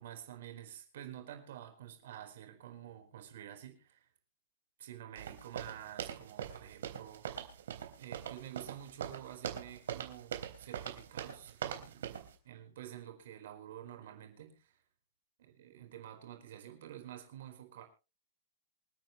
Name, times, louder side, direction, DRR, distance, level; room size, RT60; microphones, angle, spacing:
voice 1, 0.0-4.1 4.8-7.5 8.0-14.8 15.4-17.8, right 11 dB, 60° right, 4.5 m, -49 dB
sound 1, 5.1-12.3, right 9 dB, 90° right, 3.5 m, -42 dB
27.5 x 9.3 x 3.1 m
supercardioid pair, 175°, 0 cm